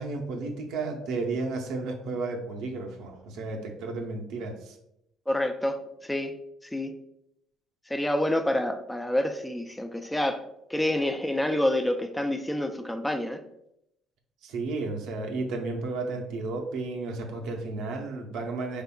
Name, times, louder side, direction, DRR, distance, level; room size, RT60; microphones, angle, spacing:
voice 1, 0.0-4.8 14.4-18.8, right 3 dB, 75° right, 0.6 m, -33 dB
voice 2, 5.3-7.0 7.9-13.4, left 1 dB, 10° left, 0.4 m, -28 dB
3.6 x 3.4 x 2.2 m
supercardioid pair, 75°, 0 cm